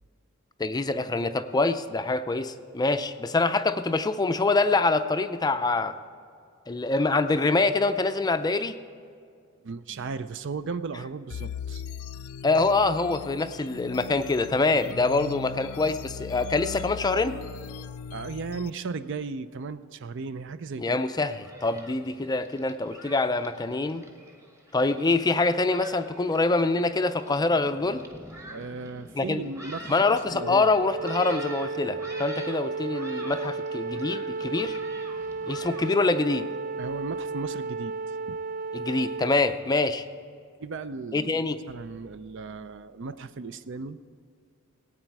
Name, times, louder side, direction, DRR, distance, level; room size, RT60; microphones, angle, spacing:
voice 1, 0.6-5.9 6.7-8.8 12.4-17.4 20.8-24.0 24.7-28.0 29.2-29.4 29.9-34.8 35.5-36.5 38.7-40.0 41.1-41.6, left 3 dB, 20° left, 10 dB, 0.4 m, -25 dB
voice 2, 9.6-11.8 18.1-21.0 28.5-30.7 36.8-37.9 38.3-38.4 40.6-44.0, right 4 dB, 60° right, 13 dB, 0.5 m, -36 dB
sound 1, 11.3-18.7, left 7 dB, 85° left, 0.4 m, -39 dB
Thunderstorm, 21.1-35.9, right 1 dB, 15° right, 1.2 m, -46 dB
Wind instrument woodwind instrument, 30.3-39.5, right 3 dB, 40° right, 1.0 m, -33 dB
18.5 x 8.9 x 4.7 m, 2.2 s
head